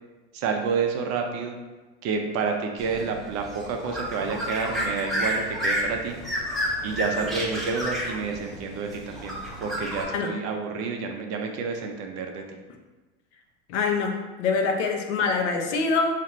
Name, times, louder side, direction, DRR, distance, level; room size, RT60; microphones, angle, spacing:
voice 1, 0.3-1.6 2.0-6.1 6.8-9.3 9.6-12.4, right 5 dB, 45° right, 3 dB, 0.5 m, -29 dB
sound 1, 2.8-10.0, equal, ahead, 0.6 m, -31 dB
voice 2, 13.7-16.2, left 4 dB, 80° left, 3 dB, 0.7 m, -25 dB
4.0 x 2.5 x 3.0 m, 1.2 s
supercardioid pair, 120°, 35 cm